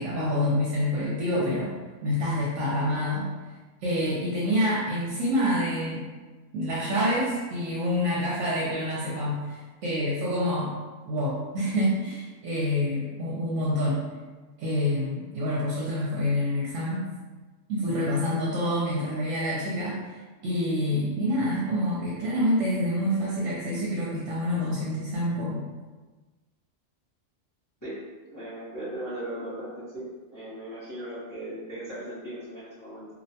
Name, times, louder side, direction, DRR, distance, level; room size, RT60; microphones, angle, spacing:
voice 1, 0.0-1.7 2.0-3.3 3.8-6.0 6.5-10.7 11.0-14.0 14.6-17.1 17.7-20.1 20.4-25.6, left 1 dB, 75° right, -5 dB, 0.9 m, -27 dB
voice 2, 28.3-30.1 30.3-33.1, right 1 dB, 15° left, -13 dB, 0.8 m, -37 dB
2.6 x 2.1 x 2.7 m, 1.3 s
omnidirectional pair, 1.3 m